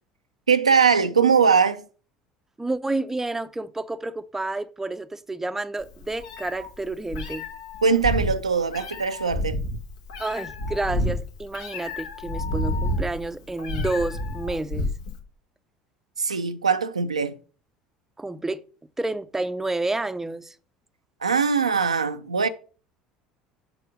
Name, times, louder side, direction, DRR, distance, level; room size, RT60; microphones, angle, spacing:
voice 1, 0.5-1.8 7.8-9.6 16.2-17.4 21.2-22.5, right 6 dB, 85° right, 0.4 m, -21 dB
voice 2, 2.6-7.4 10.2-14.9 18.2-18.6 19.0-20.5, right 2 dB, 10° right, 0.6 m, -30 dB
Meow, 5.8-15.2, left 1 dB, 70° left, 1.3 m, -30 dB
7.7 x 4.9 x 5.1 m
figure-of-eight pair, 65°, 3 cm